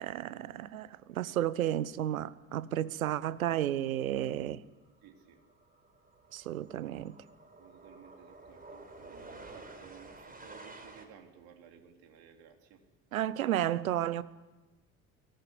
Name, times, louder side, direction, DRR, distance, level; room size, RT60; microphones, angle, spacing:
voice 1, 0.0-4.6 6.3-7.2 13.1-14.2, right 12 dB, 80° right, 0.9 m, -32 dB
sound 1, 4.3-4.5 4.7-11.0, right 2 dB, 20° right, 4.9 m, -51 dB
voice 2, 5.0-5.4 7.6-12.8, right 8 dB, 60° right, 3.8 m, -56 dB
23.5 x 18.0 x 9.8 m
figure-of-eight pair, 60°, 41 cm